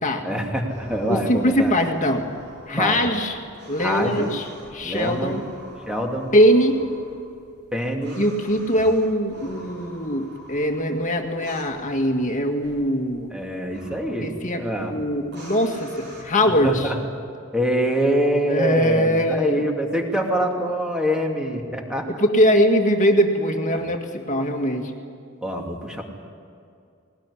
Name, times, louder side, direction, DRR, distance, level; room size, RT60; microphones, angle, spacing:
voice 1, 0.2-1.7 2.8-3.0 3.8-4.3 4.8-5.4 5.9-6.3 7.7-8.2 13.3-14.9 16.6-17.0 17.5-22.2 23.7-23.8 25.4-26.0, equal, 5° right, 1 dB, 2.7 m, -25 dB
sound 1, 0.7-16.2, equal, 60° right, 6.8 m, -46 dB
voice 2, 1.1-2.3 2.7-3.4 3.7-5.4 6.3-6.8 8.2-13.3 14.2-16.9 18.5-19.7 22.1-24.9, equal, 40° left, 3 dB, 2.0 m, -21 dB
19.5 x 19.5 x 10.0 m, 2.4 s
head